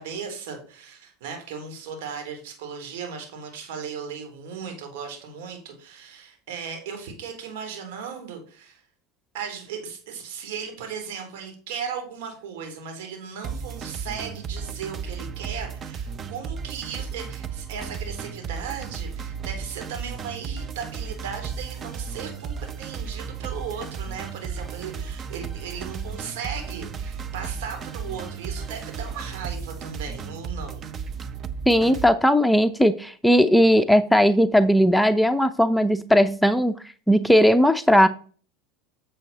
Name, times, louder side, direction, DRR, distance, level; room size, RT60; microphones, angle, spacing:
voice 1, 0.0-8.8 9.3-30.8, right 6 dB, 70° right, 4 dB, 3.4 m, -36 dB
sound 1, 13.4-32.1, right 6 dB, 35° right, 0.8 m, -34 dB
voice 2, 31.7-36.8 37.1-38.1, equal, ahead, 9 dB, 0.6 m, -18 dB
7.7 x 6.9 x 4.1 m, 0.42 s
hypercardioid pair, 80°, 0 cm